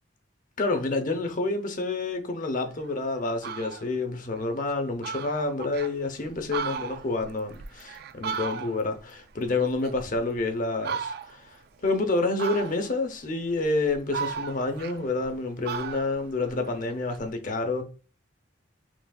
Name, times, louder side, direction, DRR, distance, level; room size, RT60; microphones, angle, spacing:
voice 1, 0.6-17.8, left 3 dB, 45° left, 0.7 m, -28 dB
Fowl, 2.8-2.9 3.3-3.9 4.4-4.5 4.7-4.8 5.0-5.9 6.4-9.0 9.3-10.4 10.8-11.5 12.4-13.0 13.6-15.3 15.6-17.2, right 6 dB, 55° right, 0.3 m, -36 dB
6.0 x 2.5 x 2.2 m
head